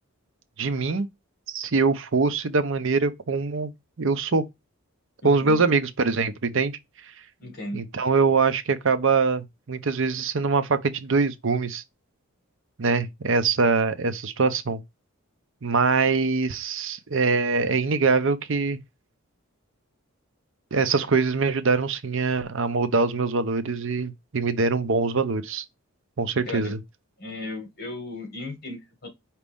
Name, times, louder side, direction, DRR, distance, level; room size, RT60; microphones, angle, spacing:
voice 1, 0.6-1.1 1.5-3.7 4.0-4.4 5.2-6.8 7.7-11.8 12.8-14.8 15.6-18.8 20.7-25.6 26.2-26.8, right 4 dB, 60° right, 0.6 m, -23 dB
voice 2, 5.2-5.7 7.4-7.8 15.7-15.8 26.5-26.7 27.2-29.1, left 2 dB, 45° left, 1.9 m, -36 dB
5.1 x 2.9 x 3.5 m
head